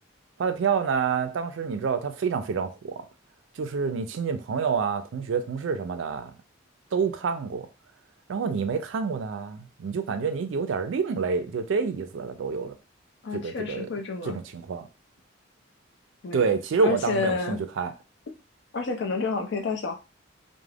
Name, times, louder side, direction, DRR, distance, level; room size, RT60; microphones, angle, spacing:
voice 1, 0.4-3.0 3.6-6.3 6.9-7.7 8.3-12.7 13.3-13.9 14.2-14.9 16.3-17.9, right 5 dB, 70° right, 0.4 m, -28 dB
voice 2, 13.2-14.4 16.2-16.5 16.8-17.6 18.7-20.0, left 4 dB, 65° left, 0.5 m, -29 dB
2.3 x 2.1 x 3.3 m
head